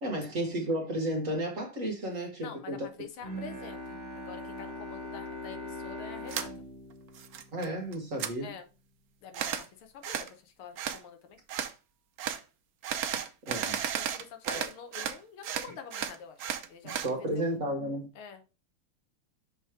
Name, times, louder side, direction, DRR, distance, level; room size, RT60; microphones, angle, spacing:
voice 1, 0.0-2.9 7.5-8.5 13.5-14.2 14.4-14.6 16.8-18.1, right 1 dB, 45° right, 1.4 m, -33 dB
voice 2, 2.4-6.5 8.4-8.7 9.2-11.4 13.9-17.6 18.1-18.4, left 6 dB, 80° left, 1.7 m, -47 dB
Bowed string instrument, 3.2-8.3, left 1 dB, 25° right, 1.8 m, -42 dB
sound 1, 6.3-6.5 6.9-7.7 7.9-8.3 9.3-9.7 10.0-10.3 10.8-11.0 11.5-11.7 12.2-12.4 12.8-15.2 15.4-17.1, right 9 dB, 80° right, 0.8 m, -34 dB
6.6 x 3.0 x 4.8 m
omnidirectional pair, 2.4 m